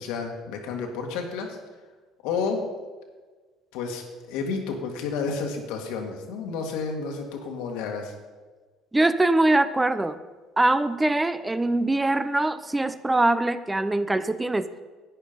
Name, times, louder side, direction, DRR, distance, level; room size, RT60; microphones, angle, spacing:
voice 1, 0.0-1.6 2.2-2.6 3.7-8.1, left 5 dB, 90° left, 2 dB, 2.0 m, -31 dB
voice 2, 8.9-10.2 10.6-14.7, right 2 dB, 10° right, 13 dB, 0.5 m, -23 dB
11.0 x 9.4 x 5.4 m, 1.3 s
cardioid pair, 115°, 0 cm